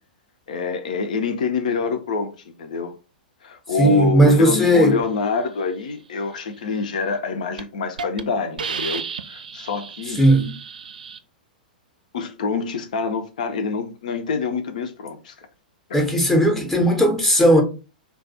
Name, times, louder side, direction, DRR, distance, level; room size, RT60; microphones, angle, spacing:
voice 1, 0.5-2.9 3.4-10.2 12.1-15.5 15.9-16.0, left 4 dB, 55° left, 0.6 m, -26 dB
voice 2, 3.8-5.0 10.2-10.5 15.9-17.6, right 1 dB, 5° left, 0.7 m, -16 dB
Hiss, 7.0-7.2 7.6-7.7 8.0-8.2 8.6-11.2, right 5 dB, 65° right, 0.3 m, -32 dB
2.3 x 2.3 x 4.0 m
figure-of-eight pair, 105°, 5 cm